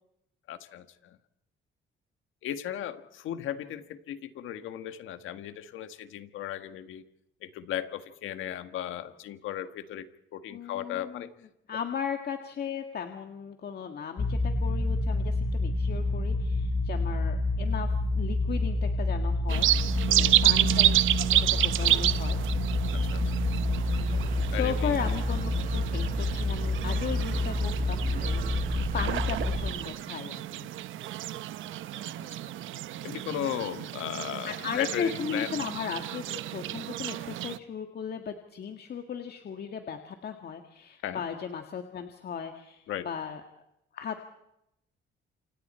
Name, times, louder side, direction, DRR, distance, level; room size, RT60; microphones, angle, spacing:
voice 1, 0.5-1.2 2.4-7.0 7.4-11.3 20.1-20.4 22.9-23.2 24.5-25.0 31.9-32.4 33.0-35.5 41.0-41.2 42.9-43.1, left 11 dB, 85° left, 9 dB, 1.7 m, -36 dB
voice 2, 10.5-11.2 11.7-19.9 20.1-20.9 21.3-22.4 24.5-28.5 28.9-30.7 34.4-43.4 43.9-44.2, left 7 dB, 55° left, 5 dB, 2.0 m, -36 dB
sound 1, 14.2-29.7, left 2 dB, 40° left, 4.0 m, -28 dB
sound 2, 19.5-37.6, right 13 dB, 80° right, 0.8 m, -30 dB
sound 3, 23.9-29.9, right 5 dB, 45° right, 4.2 m, -44 dB
29.0 x 26.5 x 4.4 m, 0.81 s
cardioid pair, 90°, 20 cm